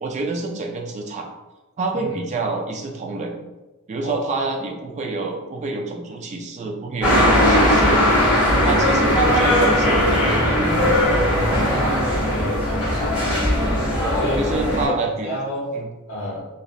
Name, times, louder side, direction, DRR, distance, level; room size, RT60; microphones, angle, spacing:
voice 1, 0.0-1.3 1.8-3.4 3.9-8.1 8.6-10.6 14.4-15.3 15.7-15.9, right 3 dB, 35° right, 1 dB, 0.3 m, -27 dB
sound 1, 7.0-14.9, equal, 5° right, 1.1 m, -18 dB
voice 2, 8.5-8.8 11.3-13.0 14.1-15.7 16.1-16.5, left 1 dB, 65° left, -5 dB, 0.5 m, -30 dB
2.6 x 2.1 x 2.3 m, 1.1 s
head